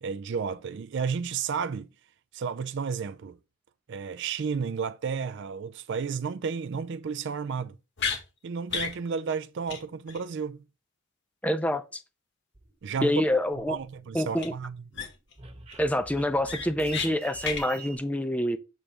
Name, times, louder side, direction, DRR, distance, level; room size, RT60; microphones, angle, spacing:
voice 1, 0.0-1.9 2.3-3.4 3.9-7.8 8.4-10.6 12.8-13.2 13.7-14.8, right 6 dB, 55° right, 0.4 m, -32 dB
sound 1, 8.0-8.2 8.7-9.0 9.3-9.4 9.7-9.8 10.1-10.2 14.4-14.5 14.9-15.3 15.7-15.8 16.2-17.1 17.4-17.6, left 6 dB, 55° left, 1.6 m, -32 dB
voice 2, 11.4-12.0 13.0-13.8 14.1-14.5 15.8-18.6, left 1 dB, 5° left, 0.5 m, -26 dB
sound 2, 12.5-14.2 14.6-18.0, right 4 dB, 30° right, 1.1 m, -47 dB
7.2 x 3.3 x 5.1 m
head